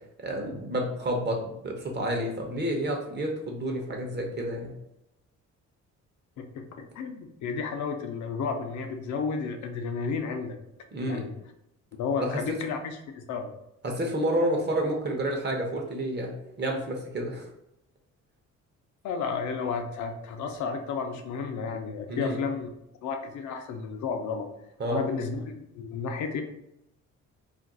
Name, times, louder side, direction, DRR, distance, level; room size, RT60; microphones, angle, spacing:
voice 1, 0.2-4.8 10.9-11.3 12.2-12.4 13.8-17.5 22.1-22.4 24.8-25.0, right 1 dB, 35° right, 1 dB, 0.8 m, -29 dB
voice 2, 6.4-6.7 6.9-10.6 11.0-11.3 12.0-13.5 19.0-22.7 23.0-24.5 24.9-26.4, left 5 dB, 70° left, 5 dB, 0.6 m, -32 dB
2.5 x 2.2 x 3.8 m, 0.83 s
cardioid pair, 90°, 30 cm